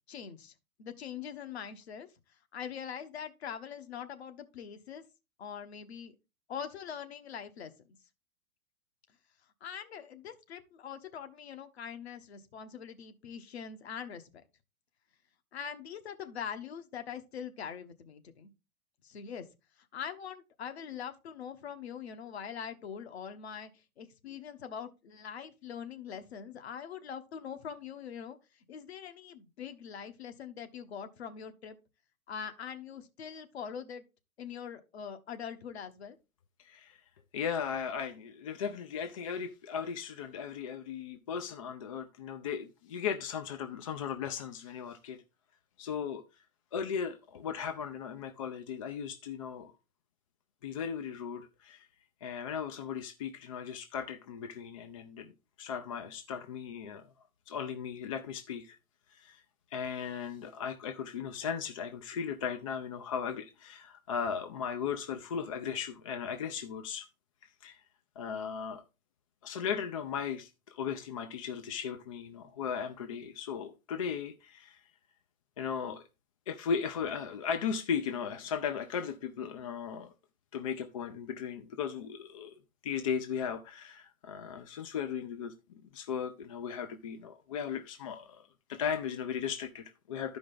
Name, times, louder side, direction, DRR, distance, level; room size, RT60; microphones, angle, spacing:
voice 1, 0.1-0.5 0.8-2.1 2.5-5.0 5.4-6.1 6.5-7.7 9.6-14.3 15.5-18.5 19.0-19.5 19.9-28.4 28.7-31.8 32.3-34.0 34.4-36.2, left 7 dB, 50° left, 1.1 m, -43 dB
voice 2, 36.6-37.0 37.3-45.2 45.8-46.2 46.7-49.7 50.6-51.8 52.2-55.3 55.6-57.0 57.5-58.8 59.1-59.4 59.7-67.1 67.6-67.8 68.2-68.8 69.4-74.8 75.6-76.0 76.5-80.1 80.5-88.4 88.7-90.4, left 7 dB, 25° left, 0.5 m, -37 dB
12.0 x 5.2 x 3.7 m
figure-of-eight pair, 110°, 41 cm